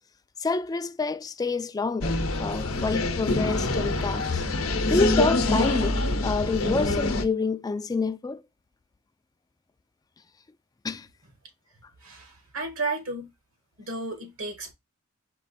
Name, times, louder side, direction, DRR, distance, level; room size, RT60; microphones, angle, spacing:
voice 1, 0.4-4.4 4.9-8.4 10.8-11.1, left 4 dB, 20° left, 0.3 m, -28 dB
sound 1, 2.0-7.2, left 2 dB, 70° left, 0.7 m, -25 dB
voice 2, 12.0-13.3 13.8-14.7, right 3 dB, 75° right, 1.5 m, -33 dB
4.6 x 2.5 x 4.0 m
head